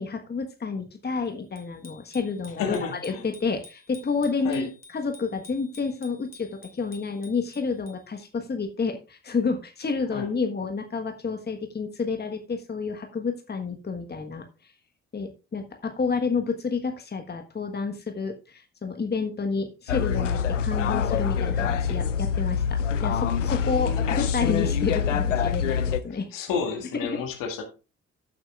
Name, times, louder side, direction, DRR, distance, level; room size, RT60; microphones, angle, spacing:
voice 1, 0.0-2.8 3.0-6.5 6.7-14.4 15.1-26.3, left 5 dB, 25° left, 1.4 m, -30 dB
Bicycle bell, 1.6-8.2, left 3 dB, 45° left, 2.7 m, -51 dB
voice 2, 2.6-3.2 4.4-4.7 10.1-10.3 23.6-24.3 26.1-27.6, left 6 dB, 65° left, 2.0 m, -31 dB
sound 1, 19.9-26.0, left 7 dB, 85° left, 0.5 m, -25 dB
15.0 x 7.8 x 2.4 m
figure-of-eight pair, 40°, 36 cm